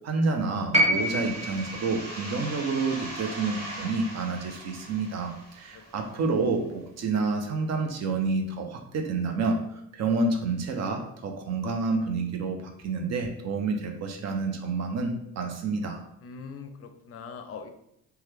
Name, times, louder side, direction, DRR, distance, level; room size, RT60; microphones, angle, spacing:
voice 1, 0.0-9.6 9.9-16.0, right 3 dB, 60° right, 4 dB, 0.6 m, -29 dB
sound 1, 0.7-4.9 6.1-6.2, right 1 dB, 20° right, 0.8 m, -29 dB
sound 2, 0.9-6.4, right 1 dB, 85° right, 1.3 m, -41 dB
voice 2, 16.2-17.7, left 5 dB, 50° left, 7 dB, 0.4 m, -41 dB
2.9 x 2.3 x 3.3 m, 0.76 s
cardioid pair, 90°, 30 cm